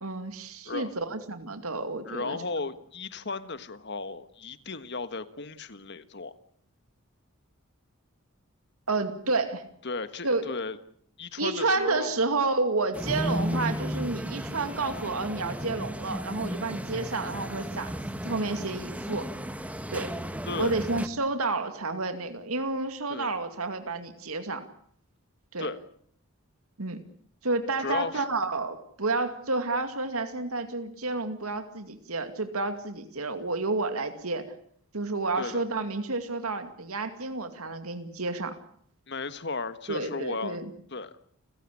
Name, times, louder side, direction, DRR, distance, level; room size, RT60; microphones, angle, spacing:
voice 1, 0.0-2.4 8.9-9.6 10.2-10.5 11.4-18.0 18.2-19.2 19.9-20.1 20.6-24.6 25.5-25.7 26.8-27.0 27.4-34.4 34.9-38.6 39.9-40.7, right 3 dB, 85° right, 8 dB, 2.4 m, -30 dB
voice 2, 2.0-6.3 9.8-10.8 11.2-12.2 20.5-20.7 23.1-23.4 25.6-25.8 27.8-28.2 35.4-35.6 39.1-40.6 40.9-41.1, left 3 dB, 55° left, 12 dB, 1.5 m, -35 dB
sound 1, 12.9-21.1, equal, 5° right, 1.4 m, -34 dB
29.5 x 16.0 x 8.6 m, 0.64 s
head